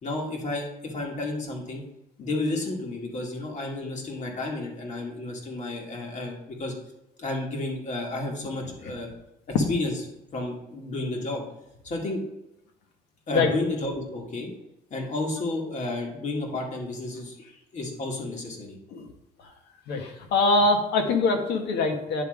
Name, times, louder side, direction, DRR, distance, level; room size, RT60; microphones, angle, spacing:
voice 1, 0.0-1.8 2.2-6.7 7.2-9.1 9.5-9.9 10.3-11.4 11.8-12.2 13.3-14.5 14.9-17.4 17.7-18.8, left 2 dB, 45° left, 0 dB, 2.2 m, -31 dB
voice 2, 19.9-22.2, left 3 dB, 80° left, 4 dB, 1.4 m, -23 dB
10.0 x 3.7 x 4.9 m, 0.89 s
cardioid pair, 110°, 17 cm